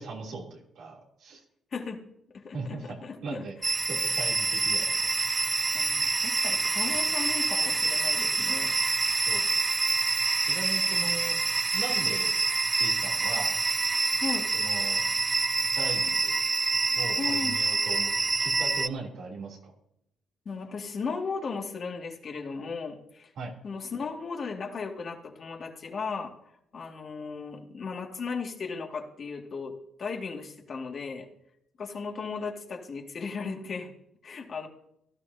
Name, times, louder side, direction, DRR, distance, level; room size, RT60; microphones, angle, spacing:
voice 1, 0.0-1.4 2.5-3.5 3.9-5.1 9.3-9.4 10.4-11.4 11.7-12.3 12.7-13.6 14.5-15.0 15.7-16.4 16.9-18.1 18.4-19.7 23.4-23.5, right 3 dB, 70° right, -2 dB, 3.2 m, -38 dB
voice 2, 2.3-3.4 5.7-8.7 11.0-11.1 14.2-14.5 17.2-17.6 20.5-23.3 23.6-26.3 26.7-29.7 30.0-31.3 31.8-33.9 34.2-34.7, left 5 dB, 50° left, 1 dB, 2.2 m, -36 dB
sound 1, 3.6-18.9, right 3 dB, 25° right, 0.4 m, -26 dB
17.0 x 12.0 x 2.8 m, 0.77 s
cardioid pair, 90°, 0 cm